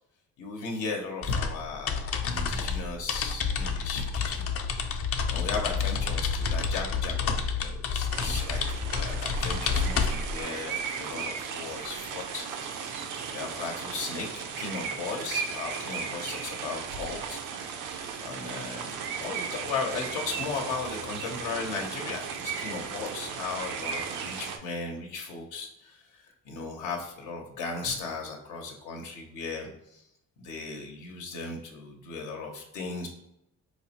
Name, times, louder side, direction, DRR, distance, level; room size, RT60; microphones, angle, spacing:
voice 1, 0.4-4.4 5.3-8.6 8.9-12.5 13.3-17.4 18.2-30.0 30.4-33.1, left 4 dB, 85° left, 1 dB, 0.7 m, -36 dB
sound 1, 1.2-10.4, left 5 dB, 50° left, 0.5 m, -29 dB
sound 2, 8.1-24.6, right 6 dB, 85° right, 0.5 m, -36 dB
4.6 x 2.0 x 2.8 m, 0.82 s
cardioid pair, 90°, 30 cm